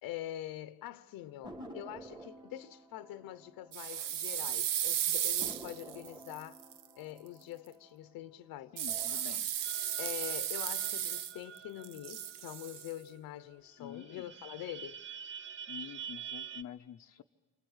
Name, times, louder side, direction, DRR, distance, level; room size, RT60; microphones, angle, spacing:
voice 1, 0.0-6.6 7.0-8.7 10.0-15.0, left 13 dB, 90° left, 0.9 m, -44 dB
sound 1, 1.4-4.5 4.8-4.9 5.4-8.3 8.8-9.4, right 1 dB, 15° right, 3.4 m, -51 dB
sound 2, 3.7-6.8 8.8-11.6 11.8-12.9, right 10 dB, 70° right, 1.0 m, -35 dB
voice 2, 8.7-9.5 13.8-14.3 15.7-17.2, left 10 dB, 50° left, 0.8 m, -47 dB
sound 3, 9.6-13.2 13.5-13.6 13.8-16.6, right 8 dB, 35° right, 0.8 m, -47 dB
28.0 x 25.5 x 8.1 m
cardioid pair, 130°, 34 cm